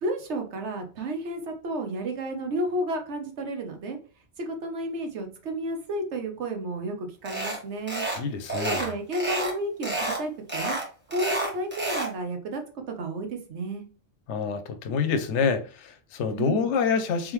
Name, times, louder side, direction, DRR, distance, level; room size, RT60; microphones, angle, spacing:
voice 1, 0.0-4.0 4.4-8.1 8.6-10.7 11.1-12.6 12.9-13.9 16.3-16.7, right 1 dB, 80° right, 1.2 m, -32 dB
sound 1, 7.3-7.6 7.9-8.2 8.5-9.5 9.8-10.2 10.5-12.1, right 2 dB, 10° right, 1.2 m, -29 dB
voice 2, 8.2-8.8 14.3-17.3, left 5 dB, 80° left, 0.9 m, -27 dB
3.7 x 3.5 x 3.1 m
omnidirectional pair, 1.2 m